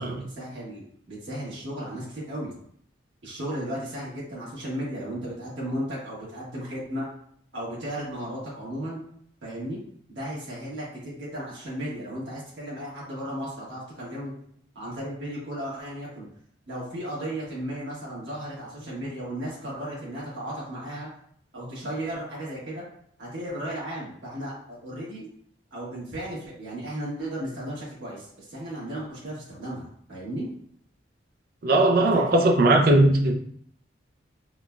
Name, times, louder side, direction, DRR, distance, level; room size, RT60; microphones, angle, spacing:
voice 1, 0.0-2.5 3.2-7.1 7.5-9.0 9.4-9.8 10.1-14.3 14.7-16.3 16.7-21.1 21.5-22.8 23.2-25.3 25.7-30.5 32.1-32.5, right 1 dB, 85° right, 1.5 m, -35 dB
voice 2, 31.6-33.4, right 2 dB, 50° right, 0.4 m, -19 dB
3.8 x 2.2 x 2.4 m
head